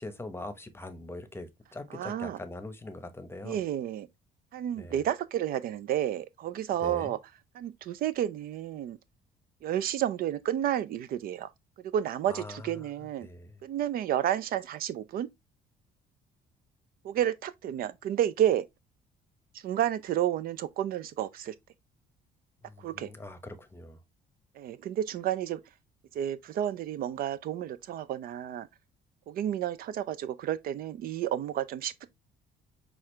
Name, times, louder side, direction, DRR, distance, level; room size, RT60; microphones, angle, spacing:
voice 1, 0.0-3.6 4.8-5.0 6.8-7.1 12.3-12.9 13.2-13.6 22.6-24.0, left 2 dB, 15° left, 0.8 m, -42 dB
voice 2, 1.9-2.4 3.4-4.1 4.5-7.2 7.5-9.0 9.6-11.5 11.9-13.3 13.6-15.3 17.0-18.6 19.6-21.5 22.8-23.1 24.6-25.6 26.1-28.7 29.3-32.1, right 11 dB, 60° right, 0.4 m, -31 dB
6.1 x 2.4 x 3.1 m
cardioid pair, 110°, 17 cm